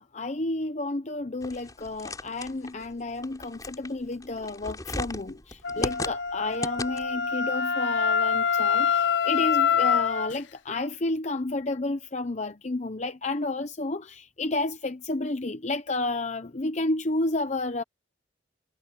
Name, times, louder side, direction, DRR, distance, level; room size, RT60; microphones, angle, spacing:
voice 1, 0.0-17.8, left 2 dB, 40° left, 0.8 m, -31 dB
sound 1, 1.4-7.2, left 2 dB, 20° left, 4.6 m, -37 dB
Wind instrument woodwind instrument, 5.6-10.3, left 7 dB, 80° left, 0.8 m, -25 dB
head